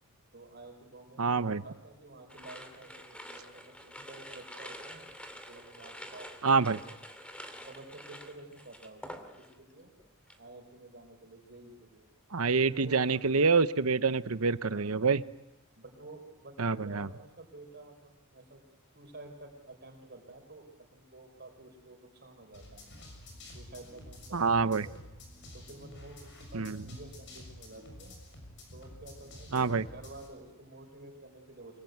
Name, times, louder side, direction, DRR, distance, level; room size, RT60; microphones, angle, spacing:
voice 1, 0.3-5.1 5.4-6.8 7.5-9.9 10.4-12.1 12.5-13.3 14.7-15.1 15.8-18.6 18.9-22.9 23.5-25.0 25.5-28.1 28.7-31.8, right 2 dB, 50° right, 3 dB, 4.5 m, -51 dB
voice 2, 1.2-1.6 6.4-6.8 12.3-15.2 16.6-17.1 24.3-24.9 26.5-26.8 29.5-29.8, right 4 dB, 70° right, 14 dB, 0.9 m, -26 dB
sound 1, 2.3-9.7 10.0-10.5, equal, 5° left, 2.6 m, -47 dB
sound 2, 22.5-30.3, left 1 dB, 55° left, 6.7 m, -50 dB
24.5 x 23.0 x 9.5 m, 0.98 s
head